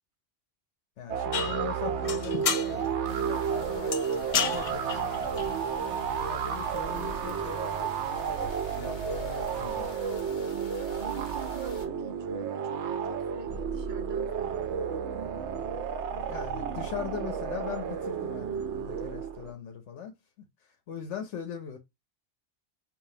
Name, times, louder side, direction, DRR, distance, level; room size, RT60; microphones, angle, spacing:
voice 1, 1.0-5.4 6.1-9.9 16.1-20.1 20.6-21.8, left 8 dB, 90° left, 1.1 m, -41 dB
sound 1, 1.1-19.5, right 7 dB, 85° right, 0.9 m, -32 dB
sound 2, 1.3-7.6, left 7 dB, 65° left, 0.3 m, -35 dB
sound 3, 3.1-11.9, left 2 dB, 45° left, 0.9 m, -47 dB
voice 2, 11.0-14.9, right 4 dB, 50° right, 0.8 m, -45 dB
4.9 x 2.7 x 2.7 m
omnidirectional pair, 1.2 m